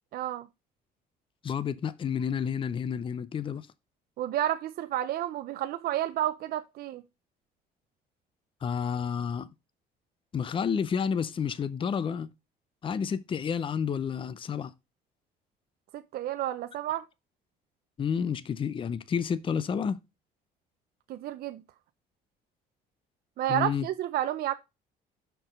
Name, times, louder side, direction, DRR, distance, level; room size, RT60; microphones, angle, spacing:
voice 1, 0.1-0.5 4.2-7.0 15.9-17.0 21.1-21.6 23.4-24.5, right 13 dB, 65° right, 0.6 m, -31 dB
voice 2, 1.4-3.7 8.6-9.5 10.3-12.3 12.8-14.7 18.0-20.0 23.5-23.9, left 7 dB, 30° left, 0.5 m, -30 dB
6.0 x 4.6 x 5.2 m
cardioid pair, 110°, 17 cm